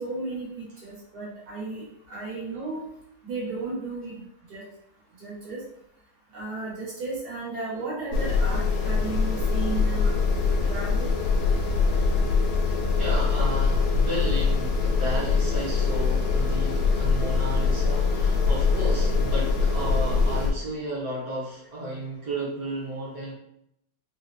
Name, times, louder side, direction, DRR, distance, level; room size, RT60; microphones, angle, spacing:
voice 1, 0.0-2.8 3.2-4.2 4.5-4.6 5.2-5.6 6.3-11.1, right 3 dB, 90° right, -6 dB, 1.8 m, -34 dB
sound 1, 8.1-20.5, left 4 dB, 75° left, 1.0 m, -23 dB
voice 2, 13.0-23.3, right 1 dB, 70° right, -7 dB, 1.6 m, -33 dB
3.9 x 2.2 x 2.6 m, 0.75 s
omnidirectional pair, 1.6 m